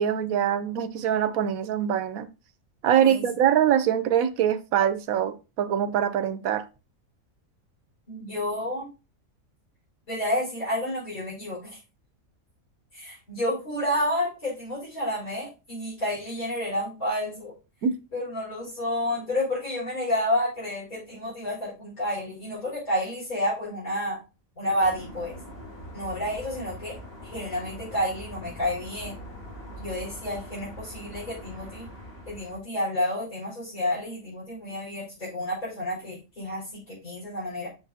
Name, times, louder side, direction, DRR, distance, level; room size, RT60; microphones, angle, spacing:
voice 1, 0.0-2.3 2.8-6.6 17.8-17.9, right 9 dB, 75° right, 1.2 m, -23 dB
voice 2, 8.1-8.9 10.1-11.8 12.9-17.5 18.1-24.2 24.6-25.3 25.9-27.0 27.2-29.2 29.8-31.9 32.3-37.7, left 1 dB, 75° left, 5.3 m, -30 dB
sound 1, 24.8-32.6, equal, 45° left, 5.1 m, -42 dB
8.1 x 6.3 x 2.7 m
omnidirectional pair, 1.5 m